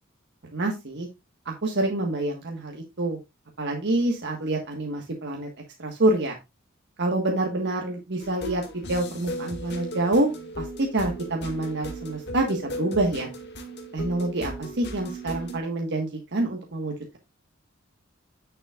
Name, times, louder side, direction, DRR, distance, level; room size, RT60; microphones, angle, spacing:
voice 1, 0.5-1.1 1.4-3.2 3.6-5.5 5.8-6.3 7.0-8.6 8.9-10.3 10.6-13.3 13.9-17.2, right 2 dB, 55° right, 2 dB, 1.5 m, -27 dB
sound 1, 8.2-15.6, equal, 55° left, 2.1 m, -36 dB
9.7 x 7.1 x 2.4 m, 0.23 s
head